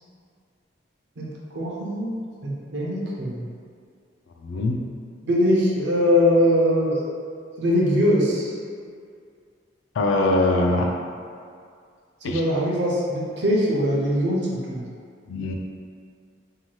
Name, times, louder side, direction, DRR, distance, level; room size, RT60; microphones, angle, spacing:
voice 1, 1.2-2.1 2.4-3.5 5.2-7.1 7.6-8.5 12.2-14.9, equal, 60° right, -4 dB, 0.6 m, -22 dB
voice 2, 4.4-4.8 9.9-11.0 12.2-12.4 15.3-15.5, left 2 dB, 80° left, 2 dB, 0.3 m, -22 dB
2.7 x 2.2 x 3.0 m, 2.2 s
head